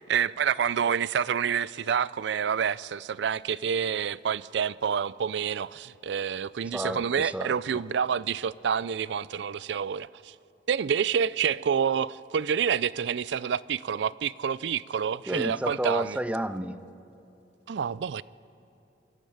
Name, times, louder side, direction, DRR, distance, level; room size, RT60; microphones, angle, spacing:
voice 1, 0.0-10.3 10.7-16.2 17.7-18.2, right 7 dB, 70° right, 0.4 m, -28 dB
voice 2, 6.7-7.5 15.3-16.8, right 1 dB, 5° right, 0.5 m, -31 dB
24.0 x 13.5 x 8.6 m
head